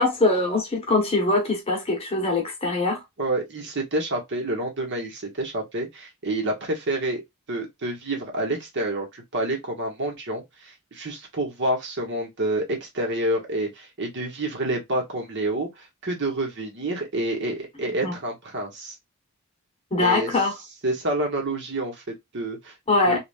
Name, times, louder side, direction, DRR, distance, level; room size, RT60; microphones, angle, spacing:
voice 1, 0.0-3.0 18.0-18.2 19.9-20.5 22.9-23.2, left 2 dB, 25° left, 1.1 m, -22 dB
voice 2, 3.2-7.2 7.5-18.9 20.0-20.3 20.8-22.7 23.0-23.2, right 1 dB, 55° right, 1.0 m, -28 dB
3.3 x 2.4 x 2.4 m
head